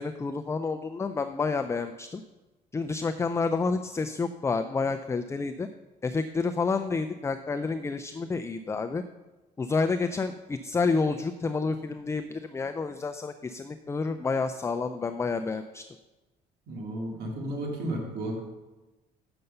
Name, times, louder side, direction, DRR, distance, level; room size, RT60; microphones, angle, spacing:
voice 1, 0.0-2.2 2.7-5.7 6.0-9.0 9.6-15.8, left 4 dB, 15° left, 8 dB, 0.4 m, -29 dB
voice 2, 16.7-18.4, right 1 dB, 75° right, 0 dB, 2.3 m, -33 dB
7.9 x 6.7 x 5.4 m, 1.1 s
cardioid pair, 110°, 17 cm